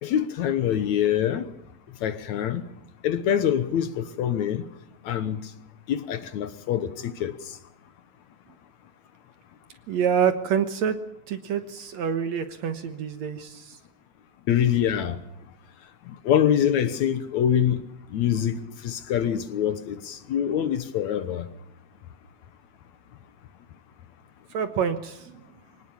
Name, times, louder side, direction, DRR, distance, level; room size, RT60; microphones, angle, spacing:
voice 1, 0.0-1.5 2.0-2.6 3.0-4.7 5.0-5.5 5.9-7.6 14.5-15.2 16.1-17.8 18.1-21.5, left 9 dB, 65° left, 2.0 m, -25 dB
voice 2, 9.9-11.0 11.3-13.8 24.5-25.4, right 7 dB, 60° right, 2.1 m, -27 dB
24.5 x 18.5 x 7.0 m
omnidirectional pair, 4.2 m